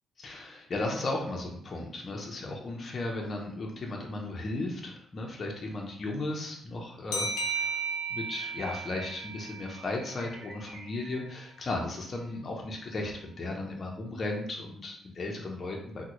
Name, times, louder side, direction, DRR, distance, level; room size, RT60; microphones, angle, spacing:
voice 1, 0.2-7.8 8.1-16.0, left 2 dB, 40° left, 0 dB, 0.6 m, -35 dB
sound 1, 7.1-10.4, right 4 dB, 80° left, 0.5 m, -35 dB
sound 2, 10.1-12.6, right 2 dB, 45° right, 0.9 m, -51 dB
3.6 x 2.1 x 3.0 m, 0.66 s
cardioid pair, 90°, 0 cm